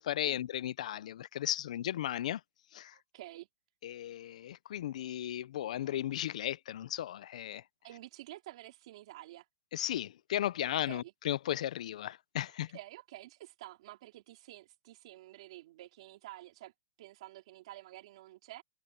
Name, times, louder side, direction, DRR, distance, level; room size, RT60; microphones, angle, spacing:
voice 1, 0.0-2.4 2.7-2.9 3.8-7.6 9.7-12.8, left 12 dB, 65° left, 0.5 m, -35 dB
voice 2, 2.9-3.5 7.8-9.5 10.8-11.1 12.7-16.7 17.0-18.6, right 16 dB, 50° right, 3.4 m, -50 dB
supercardioid pair, 170°, 4 cm